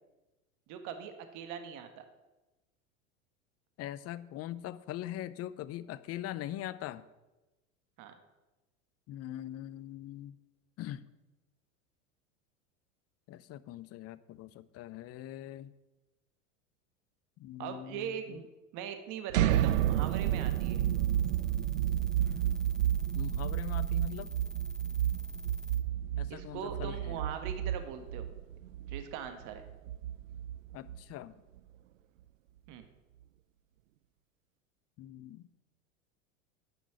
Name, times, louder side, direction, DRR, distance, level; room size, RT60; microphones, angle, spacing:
voice 1, 0.7-2.0 8.0-8.1 17.6-18.5 18.7-20.8 26.3-28.3 28.9-29.7 32.7-32.8, right 8 dB, 50° right, 7 dB, 1.5 m, -41 dB
voice 2, 3.8-7.1 9.1-10.4 10.8-11.0 13.3-15.7 17.4-18.1 23.1-24.3 26.2-27.2 30.7-31.4 35.0-35.4, left 13 dB, 40° left, 17 dB, 0.7 m, -42 dB
sound 1, 19.3-31.1, right 11 dB, 80° right, 0.6 m, -31 dB
sound 2, 19.5-25.8, equal, ahead, 0.8 m, -49 dB
10.5 x 6.1 x 8.5 m, 1.1 s
hypercardioid pair, 95°, 38 cm